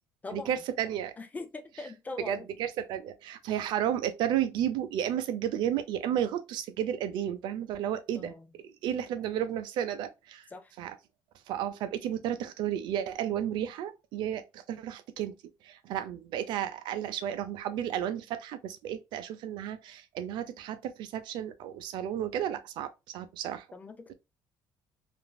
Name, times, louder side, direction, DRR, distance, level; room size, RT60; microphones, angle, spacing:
voice 1, 0.3-1.1 1.7-1.9 2.2-8.3 8.6-10.5 10.8-11.0 11.5-15.3 15.6-23.7, right 10 dB, 75° right, 0.5 m, -32 dB
voice 2, 1.2-2.4 8.2-8.4 10.5-10.6 23.7-24.1, left 3 dB, 20° left, 0.4 m, -41 dB
3.0 x 2.5 x 2.2 m
cardioid pair, 120°, 8 cm